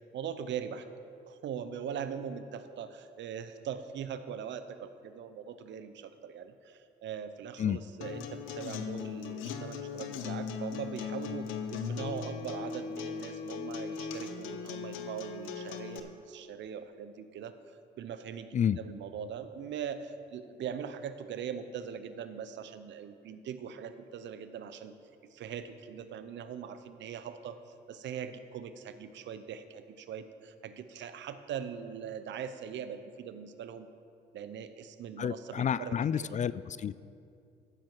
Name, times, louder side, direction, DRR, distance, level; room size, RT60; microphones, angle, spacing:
voice 1, 0.1-0.9 1.3-17.6 18.0-24.9 25.3-33.9 34.3-36.3, right 8 dB, 70° right, 11 dB, 0.7 m, -41 dB
Acoustic guitar, 8.0-16.0, left 6 dB, 85° left, 0.7 m, -38 dB
voice 2, 35.2-37.0, left 8 dB, 40° left, 17 dB, 0.4 m, -30 dB
15.0 x 7.5 x 4.7 m, 2.5 s
supercardioid pair, 60°, 20 cm